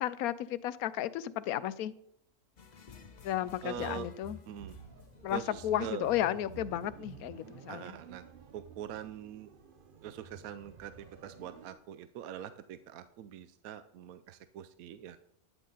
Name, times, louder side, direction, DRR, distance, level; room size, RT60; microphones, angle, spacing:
voice 1, 0.0-1.9 3.2-4.4 5.2-7.9, left 12 dB, 75° left, 16 dB, 1.0 m, -33 dB
sound 1, 2.6-7.6, left 5 dB, 40° left, 0.6 m, -53 dB
voice 2, 3.6-4.1 4.5-4.8 5.3-6.1 7.7-8.2 8.5-9.5 10.0-15.2, right 10 dB, 75° right, 12 dB, 1.0 m, -43 dB
sound 2, 4.6-11.7, right 5 dB, 45° right, 0.8 m, -51 dB
12.5 x 9.1 x 3.9 m, 0.74 s
omnidirectional pair, 1.6 m